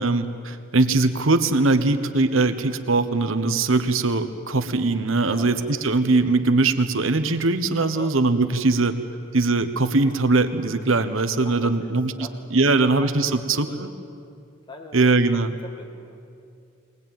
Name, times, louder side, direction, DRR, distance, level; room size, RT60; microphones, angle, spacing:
voice 1, 0.0-8.9 9.3-12.1 12.5-13.9 14.9-15.5, right 3 dB, 80° right, 9 dB, 1.2 m, -21 dB
voice 2, 5.2-5.5 7.8-8.1 11.4-14.0 14.7-15.2 15.4-16.2, left 1 dB, 20° left, 4 dB, 1.6 m, -42 dB
23.0 x 19.0 x 9.2 m, 2.4 s
head